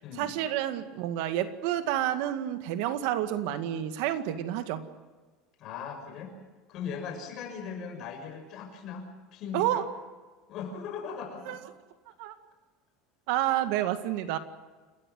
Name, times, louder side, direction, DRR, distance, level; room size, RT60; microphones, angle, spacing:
voice 1, 0.2-4.9 9.5-9.9 11.5-11.6 12.2-12.4 13.3-14.4, right 12 dB, 70° right, 9 dB, 2.0 m, -29 dB
voice 2, 5.6-6.3 6.7-9.1 9.3-9.8 10.5-11.6, left 6 dB, 40° left, 2 dB, 6.5 m, -38 dB
29.5 x 13.5 x 9.5 m, 1.3 s
cardioid pair, 155°, 0 cm